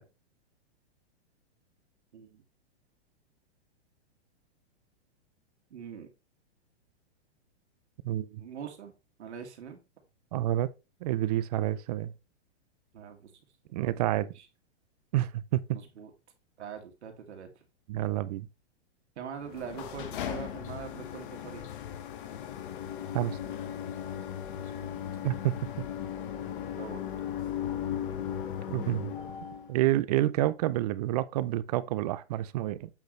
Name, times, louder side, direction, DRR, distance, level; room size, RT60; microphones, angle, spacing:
voice 1, 2.1-2.4 5.7-6.1 8.4-9.8 12.9-13.4 14.1-14.5 15.7-16.1 16.6-17.6 19.2-21.7 24.6-25.0 26.8-27.0, right 7 dB, 80° right, 2.3 m, -43 dB
voice 2, 8.0-8.4 10.3-10.7 11.0-12.1 13.7-14.3 15.1-15.6 17.9-18.5 23.1-23.4 25.2-25.5 28.7-29.1 29.7-32.9, right 14 dB, 35° right, 0.5 m, -28 dB
sound 1, 19.4-29.7, left 9 dB, 50° left, 1.3 m, -37 dB
8.2 x 6.3 x 3.2 m
hypercardioid pair, 150°, 34 cm